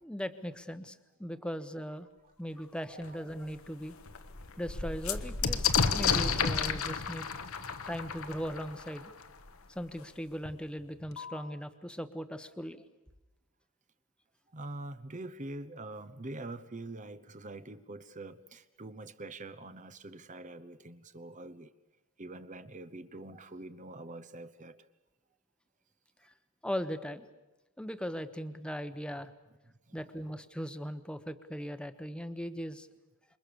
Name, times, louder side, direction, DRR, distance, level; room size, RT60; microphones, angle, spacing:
voice 1, 0.0-2.1 2.4-3.9 4.6-7.3 7.9-9.1 9.7-12.8 26.2-26.3 26.6-27.2 27.8-29.3 29.9-32.9, equal, 5° left, 10 dB, 1.1 m, -39 dB
voice 2, 2.9-3.2 14.5-21.7 22.2-24.9 29.7-30.0, right 2 dB, 35° right, 12 dB, 0.9 m, -45 dB
sound 1, 3.0-3.1 3.6-3.7 3.9-9.5 10.4-10.5 10.8-11.4, left 6 dB, 70° left, 1.3 m, -32 dB
27.5 x 23.5 x 7.0 m, 1.0 s
head